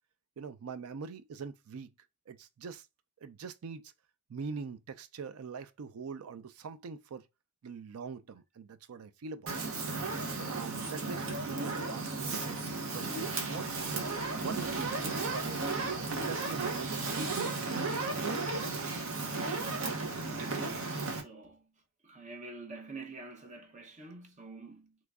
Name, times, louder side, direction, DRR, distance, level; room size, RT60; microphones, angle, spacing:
voice 1, 0.4-1.9 2.3-2.9 3.2-3.9 4.3-7.2 7.6-9.7 10.2-12.6 12.9-15.6 16.1-18.4, right 5 dB, 90° right, 0.4 m, -43 dB
Fire, 9.5-21.2, right 3 dB, 70° right, 0.9 m, -34 dB
voice 2, 19.9-21.7 22.0-25.0, right 3 dB, 35° right, 0.6 m, -48 dB
3.1 x 2.3 x 3.5 m
head